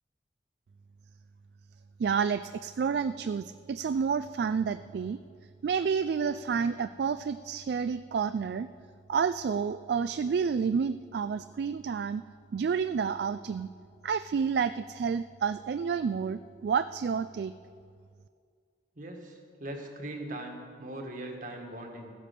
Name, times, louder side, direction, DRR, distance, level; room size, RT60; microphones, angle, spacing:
voice 1, 2.0-5.2 5.6-8.7 9.1-12.2 12.5-13.7 14.0-17.5, right 6 dB, 65° right, 13 dB, 0.3 m, -29 dB
voice 2, 19.0-22.1, right 1 dB, 50° right, 2 dB, 1.8 m, -40 dB
14.5 x 10.0 x 6.7 m, 2.2 s
head